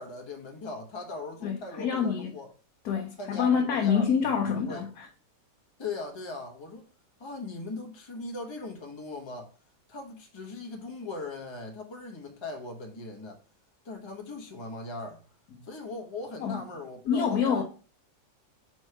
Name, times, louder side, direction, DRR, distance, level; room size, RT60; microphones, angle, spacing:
voice 1, 0.0-2.5 3.2-4.9 5.8-6.9 7.2-9.5 9.9-13.4 13.8-15.2 15.6-17.6, left 3 dB, 20° left, 0.9 m, -39 dB
voice 2, 1.4-2.3 2.8-5.1 16.4-16.6 17.1-17.6, left 7 dB, 65° left, 1.2 m, -26 dB
4.6 x 4.4 x 4.7 m
omnidirectional pair, 1.9 m